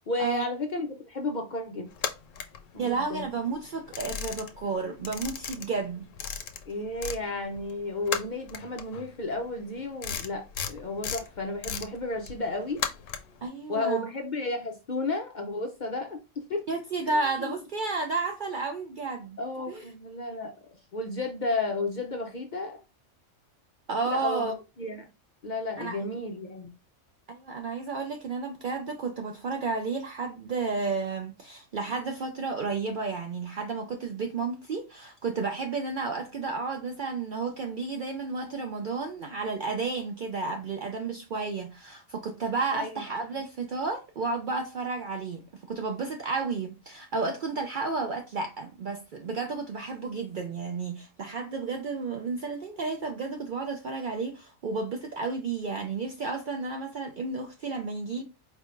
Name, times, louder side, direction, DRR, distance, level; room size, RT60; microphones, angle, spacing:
voice 1, 0.1-1.9 2.7-3.3 6.7-12.8 13.7-16.7 17.0-17.5 19.4-20.5 20.9-22.8 24.1-25.1 25.4-26.7 42.7-43.0, left 2 dB, 55° left, 0.5 m, -33 dB
sound 1, 1.9-3.2 3.6-4.7 5.0-7.2 7.5-13.4, left 8 dB, 85° left, 0.9 m, -35 dB
voice 2, 2.8-6.1 13.4-14.1 16.7-19.4 19.7-19.8 23.9-24.5 25.8-26.0 27.3-58.2, right 4 dB, 60° right, 0.5 m, -32 dB
4.5 x 3.3 x 2.4 m
omnidirectional pair, 1.3 m